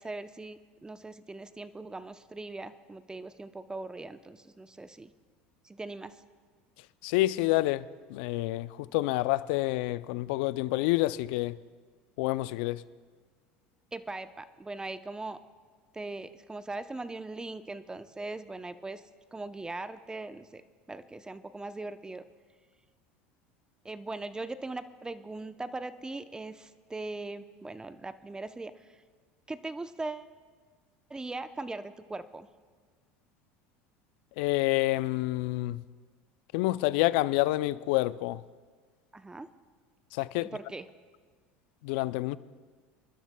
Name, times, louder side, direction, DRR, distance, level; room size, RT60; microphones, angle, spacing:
voice 1, 0.0-5.1 5.6-6.1 13.9-15.4 15.9-19.0 19.3-20.6 20.9-22.2 23.8-29.0 29.5-30.3 31.1-32.5 39.1-39.5 40.4-40.9, right 2 dB, 15° right, 0.6 m, -40 dB
voice 2, 7.0-11.6 12.2-12.8 34.4-35.8 36.5-38.4 40.1-40.5 41.8-42.4, left 18 dB, 70° left, 0.4 m, -28 dB
27.5 x 12.0 x 2.2 m
hypercardioid pair, 90°, 6 cm